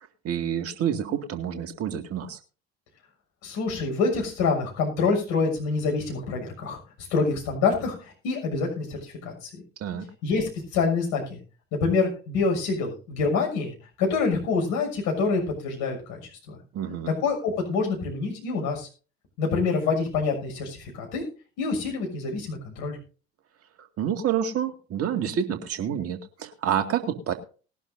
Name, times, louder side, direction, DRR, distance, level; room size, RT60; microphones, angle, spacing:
voice 1, 0.2-2.4 9.8-10.1 16.7-17.1 23.8-27.3, right 9 dB, 45° right, 7 dB, 2.2 m, -28 dB
voice 2, 3.4-6.8 7.1-9.5 10.2-11.4 11.7-16.2 16.5-16.6 17.2-18.9 19.4-21.2 21.6-23.0, left 4 dB, 60° left, 1 dB, 6.5 m, -26 dB
20.0 x 11.5 x 2.7 m, 0.37 s
figure-of-eight pair, 55°, 33 cm